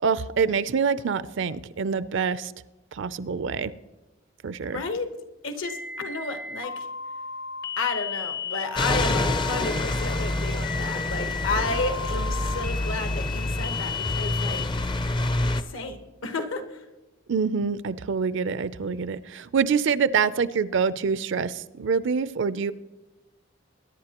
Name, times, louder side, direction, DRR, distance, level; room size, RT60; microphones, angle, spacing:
voice 1, 0.0-2.5 2.9-3.7 4.4-4.8 17.3-22.7, right 5 dB, 65° right, 15 dB, 0.5 m, -26 dB
voice 2, 4.7-5.1 5.4-6.9 7.8-14.7 15.6-16.8, left 3 dB, 75° left, 7 dB, 1.2 m, -32 dB
sound 1, 5.6-14.6, left 6 dB, 50° left, 0.8 m, -34 dB
sound 2, 8.8-15.6, left 2 dB, 25° left, 0.5 m, -27 dB
22.0 x 10.5 x 2.9 m, 1.2 s
head